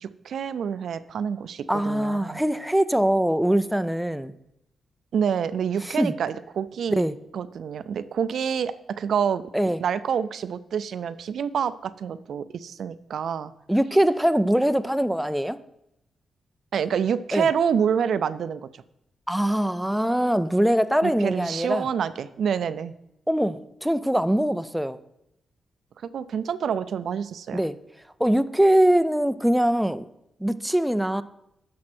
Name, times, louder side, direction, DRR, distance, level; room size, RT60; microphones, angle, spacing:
voice 1, 0.0-2.4 5.1-7.0 7.3-9.4 9.8-13.5 16.7-18.6 21.0-22.9 26.1-27.6, right 7 dB, 75° right, 13 dB, 0.4 m, -27 dB
voice 2, 1.7-4.3 5.8-6.1 7.0-7.2 9.5-9.8 13.7-15.6 17.3-17.5 19.3-21.9 23.3-25.0 27.5-27.8 28.2-30.1 30.4-31.2, right 1 dB, ahead, 11 dB, 0.4 m, -22 dB
10.5 x 6.4 x 4.3 m, 0.82 s
cardioid pair, 110°, 0 cm